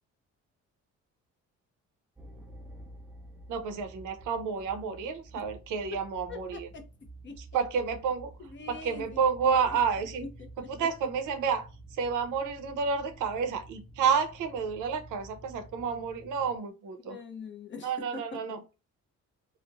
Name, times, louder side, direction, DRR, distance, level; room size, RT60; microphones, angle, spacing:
sound 1, 2.2-16.6, right 1 dB, 5° right, 0.4 m, -50 dB
voice 1, 3.5-6.7 7.5-8.3 8.7-10.3 10.7-11.7 12.0-17.2 17.8-18.6, right 6 dB, 85° right, 0.6 m, -30 dB
voice 2, 6.3-6.8 7.2-7.6 8.4-9.8 10.2-10.9 17.0-18.4, left 5 dB, 40° left, 0.7 m, -44 dB
2.9 x 2.1 x 2.4 m
cardioid pair, 90°, 30 cm